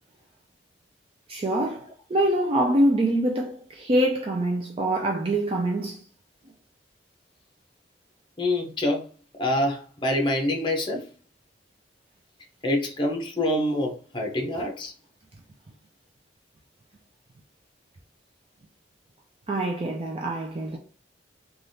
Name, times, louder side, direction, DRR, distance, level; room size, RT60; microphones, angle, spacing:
voice 1, 1.3-6.0 19.5-20.8, right 1 dB, 30° right, 0.4 m, -25 dB
voice 2, 8.4-9.1 9.4-11.0 12.6-14.9, left 1 dB, 25° left, 0.7 m, -26 dB
3.4 x 2.4 x 2.6 m
head